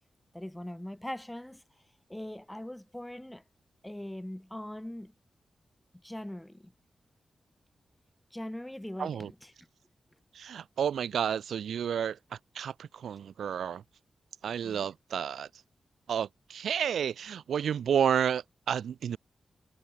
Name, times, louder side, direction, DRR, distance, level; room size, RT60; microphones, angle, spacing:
voice 1, 0.3-1.6 2.1-3.4 3.8-5.1 6.0-6.7 8.3-9.5 14.6-14.9, left 1 dB, 10° left, 1.8 m, -41 dB
voice 2, 9.0-9.3 10.3-13.8 14.4-15.5 16.1-19.2, right 8 dB, 85° right, 1.7 m, -31 dB
cardioid pair, 50°, 0 cm